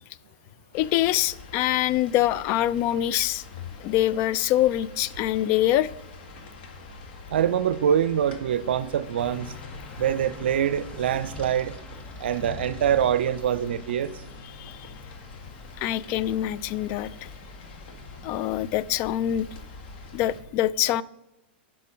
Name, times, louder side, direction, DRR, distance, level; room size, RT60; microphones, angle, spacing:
sound 1, 0.7-20.4, left 3 dB, 65° left, 1.9 m, -46 dB
voice 1, 0.7-3.4 3.8-5.9 14.6-14.9 15.8-17.3 18.2-19.5 20.1-21.0, left 13 dB, 45° left, 0.4 m, -24 dB
voice 2, 7.3-9.5 10.0-11.7 12.2-14.1, right 9 dB, 75° right, 0.5 m, -24 dB
sound 2, 9.1-20.4, left 3 dB, 20° left, 1.2 m, -44 dB
10.5 x 6.0 x 5.1 m
hypercardioid pair, 120°, 6 cm